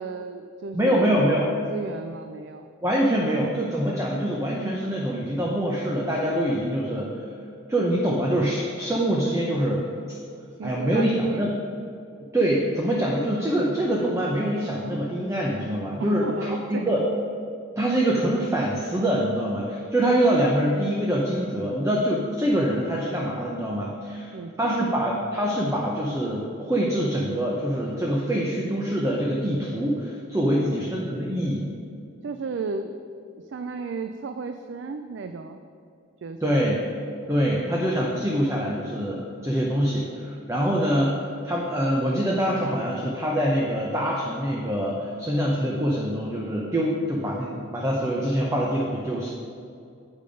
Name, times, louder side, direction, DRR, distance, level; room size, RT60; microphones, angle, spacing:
voice 1, 0.0-2.7 10.6-11.5 16.0-17.0 24.3-24.7 30.4-30.9 32.2-32.9 33.3-35.6 36.2-36.6, right 4 dB, 60° right, 8 dB, 0.3 m, -34 dB
voice 2, 0.7-1.5 2.8-7.3 7.7-9.8 10.6-11.5 12.3-17.0 17.8-31.6 36.4-36.8 37.3-49.3, equal, 15° right, -3 dB, 0.7 m, -24 dB
8.5 x 5.2 x 5.1 m, 2.4 s
head